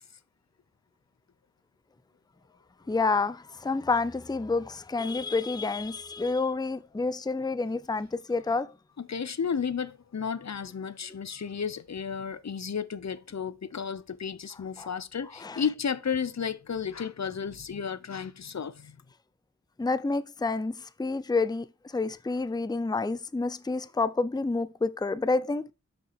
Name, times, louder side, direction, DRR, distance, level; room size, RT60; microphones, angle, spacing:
voice 1, 2.9-8.7 14.8-14.9 15.4-15.6 19.8-21.7 21.9-25.6, left 3 dB, 15° left, 0.5 m, -29 dB
voice 2, 9.0-19.0, left 6 dB, 55° left, 0.6 m, -33 dB
6.0 x 5.3 x 6.4 m
wide cardioid pair, 60°, 32 cm